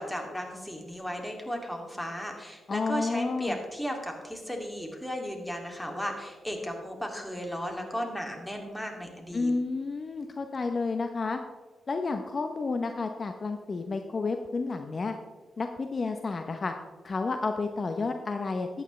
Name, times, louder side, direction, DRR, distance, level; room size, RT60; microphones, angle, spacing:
voice 1, 0.0-9.5, equal, 10° left, 2 dB, 2.5 m, -35 dB
voice 2, 2.7-3.6 9.3-11.4 11.9-15.1 15.6-16.7 17.0-18.7, left 3 dB, 45° left, 6 dB, 0.8 m, -30 dB
13.5 x 9.1 x 3.2 m, 1.4 s
supercardioid pair, 55°, 0 cm